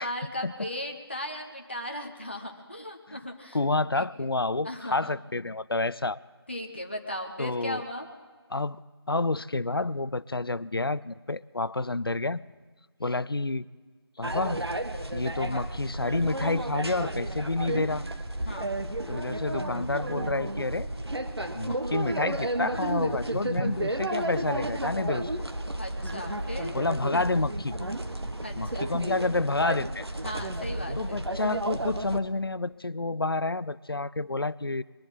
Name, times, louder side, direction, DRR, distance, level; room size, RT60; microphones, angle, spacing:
voice 1, 0.0-3.6 3.9-4.0 4.6-5.1 6.5-8.1 15.3-15.7 18.4-18.7 25.8-26.7 27.1-27.2 28.4-28.9 30.2-31.2, left 1 dB, 25° left, 2 dB, 0.8 m, -37 dB
voice 2, 3.5-6.2 7.4-7.8 8.5-8.8 9.1-12.4 13.0-13.7 14.2-14.6 15.1-18.0 19.1-20.9 21.5-25.3 26.7-27.7 28.6-30.0 31.0-34.8, left 2 dB, 60° left, 17 dB, 0.5 m, -29 dB
sound 1, 14.2-32.2, right 1 dB, 70° right, 1.3 m, -32 dB
sound 2, 16.1-16.2 16.6-16.7 17.1-17.2 17.6-17.7 18.1-18.2 18.6-18.7 19.1-19.2 19.6-19.7 20.1-20.2 20.6-20.7 21.1-21.2 21.6-21.7 22.1-22.2 22.6-22.7 23.1-23.2 23.6-23.7 24.1-24.2 24.6-24.7 25.1-25.2 25.6-25.7 26.1-26.2 26.6-26.7, right 3 dB, 40° right, 2.3 m, -48 dB
sound 3, 19.8-29.1, right 1 dB, 5° right, 1.7 m, -52 dB
21.5 x 7.7 x 8.6 m, 1.4 s
figure-of-eight pair, 170°, 14 cm